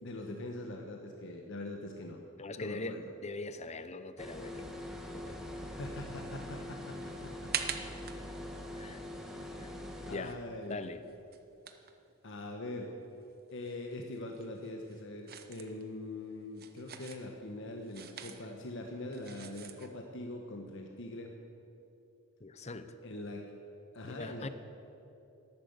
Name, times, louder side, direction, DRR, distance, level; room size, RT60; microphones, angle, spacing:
voice 1, 0.0-2.2 2.6-3.1 5.6-7.7 9.4-9.5 10.0-10.8 12.2-12.9 13.5-21.3 23.0-23.4 23.9-24.5, left 2 dB, 65° left, 2 dB, 1.2 m, -43 dB
voice 2, 2.4-4.7 5.1-5.4 8.8-9.0 9.6-9.7 10.1-10.3 10.7-11.0 22.4-22.9 24.0-24.5, left 2 dB, 30° left, 11 dB, 0.7 m, -41 dB
sound 1, 4.2-10.2, left 1 dB, ahead, 1.5 m, -43 dB
sound 2, 7.0-12.9 13.2-20.0, right 8 dB, 50° right, 0.9 m, -45 dB
12.5 x 12.0 x 8.0 m, 2.9 s
head